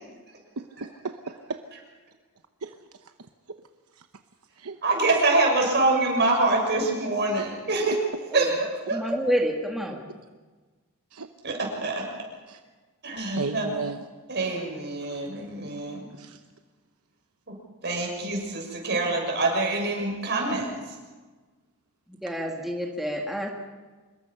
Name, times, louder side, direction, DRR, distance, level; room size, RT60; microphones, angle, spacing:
voice 1, 0.6-1.0 2.6-2.7 4.0-4.1 4.6-4.8 7.4-7.5 11.1-11.3 12.5-12.6 13.0-14.0 16.1-16.4, right 4 dB, 75° right, 7 dB, 1.0 m, -35 dB
voice 2, 4.8-8.0 8.3-9.0 11.4-12.0 13.0-13.7 14.3-16.1 17.5-17.6 17.8-20.7, right 2 dB, 50° right, 0 dB, 6.6 m, -25 dB
voice 3, 8.9-10.1 22.1-23.5, equal, ahead, 0 dB, 1.9 m, -28 dB
26.0 x 21.5 x 5.7 m, 1.3 s
head